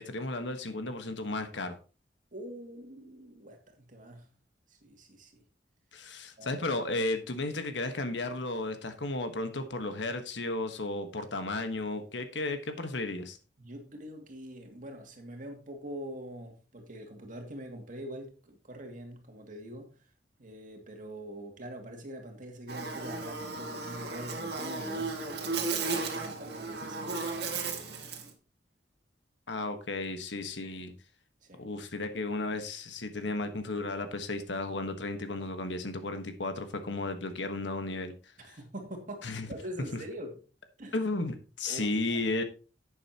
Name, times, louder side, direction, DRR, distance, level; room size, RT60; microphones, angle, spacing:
voice 1, 0.0-1.8 5.9-13.4 29.5-30.9 31.6-38.1 38.4-38.6 39.2-39.5 40.9-42.4, left 2 dB, 75° left, 1.4 m, -34 dB
voice 2, 2.3-4.3 4.7-5.4 6.4-6.6 13.6-20.0 20.4-28.0 31.4-31.6 38.4-40.4 40.8-41.0 41.7-42.2, right 1 dB, 45° right, 2.4 m, -44 dB
Buzz, 22.7-28.3, right 4 dB, 60° right, 2.1 m, -35 dB
11.0 x 8.8 x 2.9 m
head